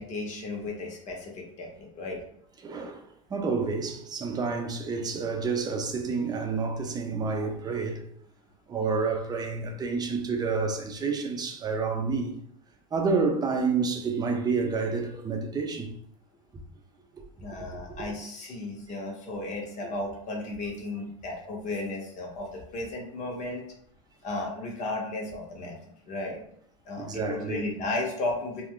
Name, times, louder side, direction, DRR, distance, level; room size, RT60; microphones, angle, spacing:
voice 1, 0.0-2.2 17.4-23.6 24.2-25.8 26.1-26.4 26.9-28.7, left 2 dB, 45° left, 0.9 m, -34 dB
voice 2, 2.6-8.0 8.7-12.3 12.9-15.9 17.1-17.2 17.6-17.7 27.0-27.7, right 4 dB, 25° right, 0.6 m, -29 dB
2.3 x 2.2 x 3.6 m
hypercardioid pair, 95°, 17 cm